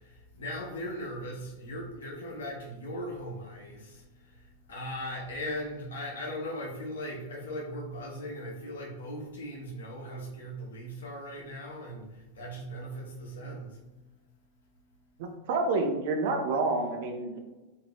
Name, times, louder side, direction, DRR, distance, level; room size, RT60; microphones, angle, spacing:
voice 1, 0.0-13.8, equal, 65° left, -2 dB, 0.9 m, -39 dB
voice 2, 15.5-17.4, right 3 dB, 50° right, 4 dB, 0.5 m, -28 dB
3.6 x 3.2 x 2.2 m, 1.1 s
figure-of-eight pair, 90°, 0 cm